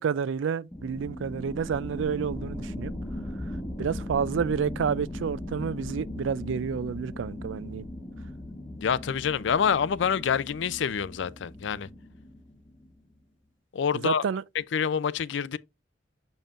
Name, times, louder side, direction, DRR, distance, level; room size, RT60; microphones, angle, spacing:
voice 1, 0.0-2.9 3.8-7.9 14.0-14.4, right 6 dB, 80° right, 0.4 m, -29 dB
sound 1, 0.7-13.0, left 1 dB, 15° left, 1.1 m, -38 dB
voice 2, 8.8-11.9 13.7-14.2 14.5-15.6, left 7 dB, 70° left, 0.4 m, -27 dB
7.1 x 5.4 x 2.5 m
head